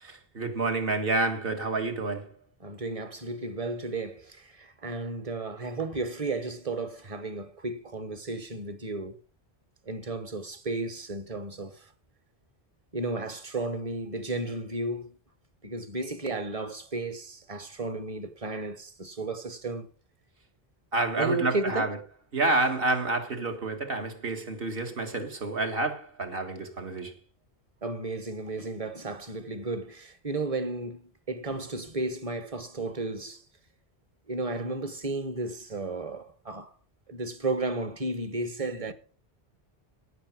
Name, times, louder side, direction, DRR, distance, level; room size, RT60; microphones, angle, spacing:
voice 1, 0.0-2.3 20.9-22.0 22.3-27.2, right 3 dB, 65° right, 1.9 m, -29 dB
voice 2, 2.6-9.2 9.9-11.8 12.9-15.2 15.6-19.9 21.2-21.9 27.8-31.0 31.3-33.4 34.3-36.7 37.1-38.9, right 2 dB, 35° right, 1.0 m, -33 dB
17.0 x 5.9 x 6.0 m
omnidirectional pair, 1.0 m